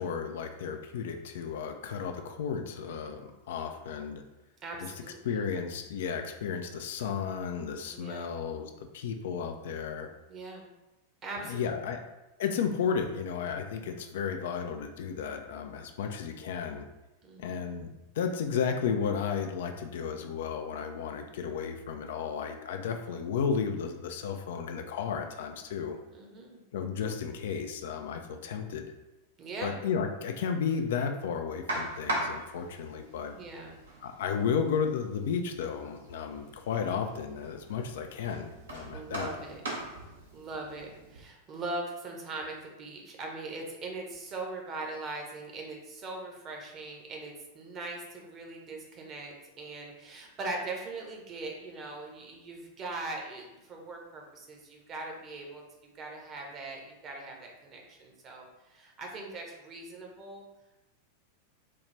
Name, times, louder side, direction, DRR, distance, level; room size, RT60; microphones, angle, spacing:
voice 1, 0.0-4.2 4.8-10.1 11.4-12.0 12.4-16.9 17.4-26.0 26.7-28.9 29.6-33.4 34.0-39.3, left 6 dB, 55° left, 5 dB, 0.3 m, -33 dB
voice 2, 4.6-5.4 7.9-8.3 10.3-10.7 11.2-11.7 17.2-17.7 26.1-26.6 29.4-29.8 33.3-33.8 38.9-39.6 40.3-55.6 55.9-60.4, right 2 dB, 30° right, 1 dB, 0.9 m, -40 dB
sound 1, 31.7-41.2, right 1 dB, 70° right, 0.8 m, -40 dB
4.1 x 2.4 x 3.3 m, 1.0 s
figure-of-eight pair, 90°, 0 cm